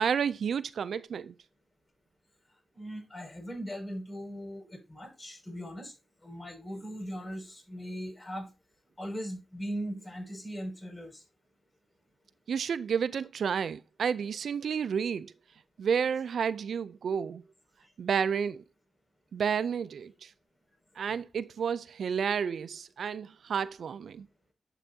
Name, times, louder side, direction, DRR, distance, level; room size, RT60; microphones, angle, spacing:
voice 1, 0.0-1.3 12.5-15.3 15.8-17.4 18.0-18.6 19.3-20.3 21.0-24.3, right 7 dB, 85° right, 0.3 m, -31 dB
voice 2, 2.7-5.9 6.2-8.5 9.0-11.2 22.3-22.4, equal, 35° left, 5.6 m, -39 dB
11.0 x 6.0 x 2.7 m
cardioid pair, 55°, 0 cm